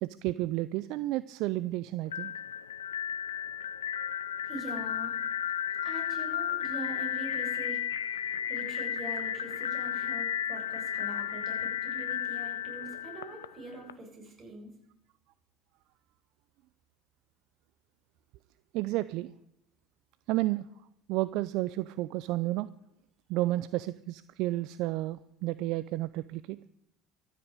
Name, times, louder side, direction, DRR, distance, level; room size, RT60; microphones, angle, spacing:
voice 1, 0.0-2.3 18.7-19.3 20.3-20.7 21.1-22.7 23.3-26.6, right 17 dB, 65° right, 17 dB, 0.4 m, -31 dB
sound 1, 2.1-13.9, left 10 dB, 90° left, 0.6 m, -34 dB
voice 2, 4.4-5.2 5.8-7.8 8.1-14.7, right 2 dB, 40° right, 0 dB, 7.5 m, -43 dB
13.5 x 8.3 x 8.9 m, 0.79 s
hypercardioid pair, 70°, 0 cm